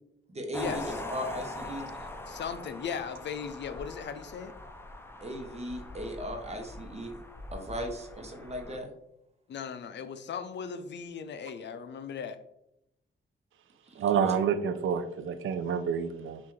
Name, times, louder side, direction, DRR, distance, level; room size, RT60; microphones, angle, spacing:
voice 1, 0.3-1.9 5.2-7.2 7.5-8.9 13.8-14.4, equal, 30° right, 3 dB, 0.9 m, -38 dB
sound 1, 0.5-8.8, left 1 dB, 10° left, 0.5 m, -42 dB
voice 2, 2.3-4.5 9.5-12.4, left 7 dB, 60° left, 10 dB, 0.5 m, -37 dB
voice 3, 14.0-16.4, right 7 dB, 75° right, 11 dB, 0.5 m, -28 dB
5.7 x 2.5 x 3.1 m, 0.82 s
cardioid pair, 80°, 21 cm